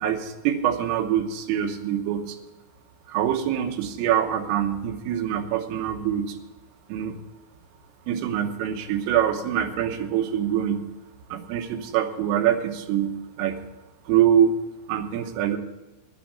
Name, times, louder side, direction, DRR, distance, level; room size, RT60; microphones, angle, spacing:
voice 1, 0.0-2.4 3.1-6.3 6.9-7.1 8.1-10.8 11.3-13.1 13.4-13.6 14.1-14.6 14.9-15.6, right 10 dB, 90° right, 5 dB, 3.7 m, -24 dB
10.5 x 9.2 x 8.4 m, 1.1 s
omnidirectional pair, 5.7 m